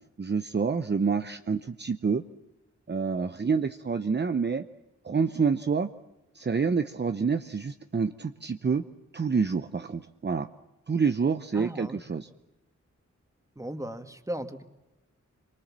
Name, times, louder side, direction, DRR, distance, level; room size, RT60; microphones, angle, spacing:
voice 1, 0.2-2.2 2.9-4.6 5.0-5.9 6.3-8.8 9.1-10.5 10.9-12.3, right 5 dB, 35° right, 9 dB, 0.8 m, -27 dB
voice 2, 11.5-12.0 13.6-14.6, right 1 dB, 10° right, 7 dB, 2.1 m, -36 dB
26.0 x 23.5 x 7.5 m, 1.0 s
wide cardioid pair, 85°, 29 cm